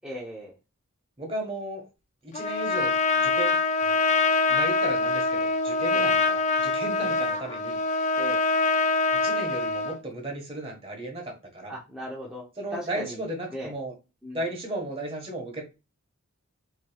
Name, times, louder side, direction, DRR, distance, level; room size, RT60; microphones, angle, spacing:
voice 1, 0.0-0.5 5.9-6.0 7.0-7.1 8.2-8.4 11.7-12.5 12.7-13.2 13.5-13.7 14.2-14.4, equal, 5° right, -5 dB, 0.8 m, -37 dB
voice 2, 1.2-1.9 2.2-4.0 4.5-7.8 9.2-11.7 12.6-13.9 14.3-15.6, right 1 dB, 25° right, 1 dB, 1.3 m, -35 dB
Trumpet, 2.3-10.0, left 3 dB, 35° left, 0.3 m, -24 dB
5.1 x 2.9 x 2.3 m, 0.28 s
head